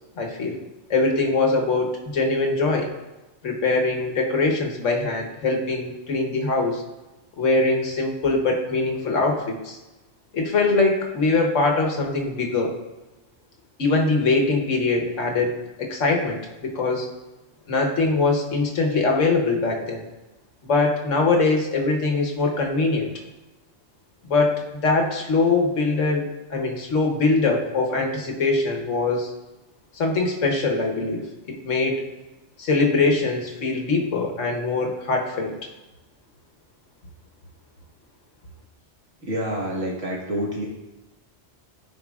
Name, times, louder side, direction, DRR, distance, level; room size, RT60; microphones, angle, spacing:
voice 1, 0.2-0.6 0.9-2.9 3.4-6.8 7.4-9.8 10.3-12.8 13.8-17.1 17.7-20.1 20.6-23.1 24.3-29.3 29.9-32.1 32.6-35.5, left 3 dB, 80° left, 1 dB, 1.5 m, -22 dB
voice 2, 39.2-40.7, equal, 75° right, -3 dB, 1.9 m, -27 dB
14.0 x 4.8 x 2.4 m, 1.1 s
omnidirectional pair, 1.3 m